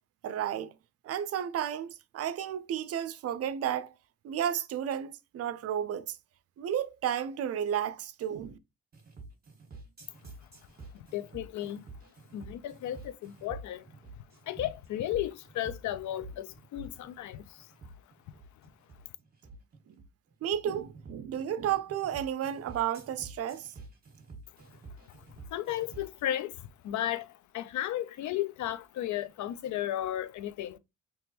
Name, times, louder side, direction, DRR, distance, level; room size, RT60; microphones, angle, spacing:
voice 1, 0.2-0.7 1.0-3.9 4.2-6.2 6.6-8.6 19.9-20.0 20.4-23.7, right 10 dB, 50° right, 0.5 m, -32 dB
sound 1, 8.9-26.2, right 3 dB, 30° right, 1.5 m, -49 dB
voice 2, 10.9-11.9 12.3-13.8 14.5-17.7 24.7-24.8 25.1-30.8, left 12 dB, 70° left, 0.5 m, -35 dB
3.5 x 3.0 x 2.8 m
cardioid pair, 90°, 30 cm